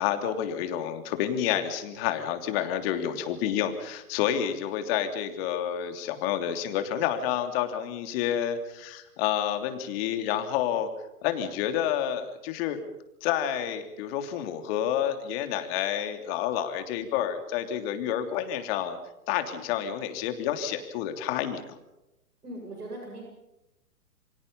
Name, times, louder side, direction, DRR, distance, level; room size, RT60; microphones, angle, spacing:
voice 1, 0.0-10.9 11.2-12.8 13.2-19.0 19.3-21.8, left 10 dB, 40° left, 7 dB, 3.2 m, -29 dB
voice 2, 22.4-23.2, right 1 dB, 90° right, 0 dB, 7.8 m, -39 dB
28.0 x 25.0 x 5.5 m, 0.90 s
hypercardioid pair, 125°, 45 cm